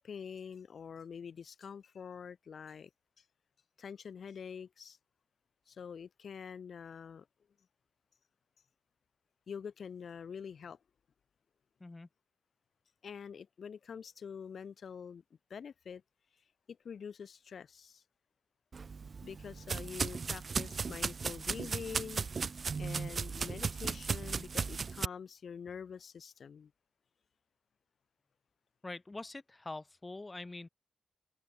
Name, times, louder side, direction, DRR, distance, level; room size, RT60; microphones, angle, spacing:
voice 1, 0.0-2.9 3.8-5.0 5.7-7.3 9.5-10.8 13.0-15.2 15.5-16.0 16.7-18.0 19.2-22.2 22.8-26.7, left 6 dB, 55° left, 1.5 m, -46 dB
sound 1, 18.7-25.1, right 5 dB, 40° right, 0.4 m, -36 dB
voice 2, 28.8-30.7, left 2 dB, 20° left, 2.2 m, -44 dB
open air
wide cardioid pair, 160°, 0 cm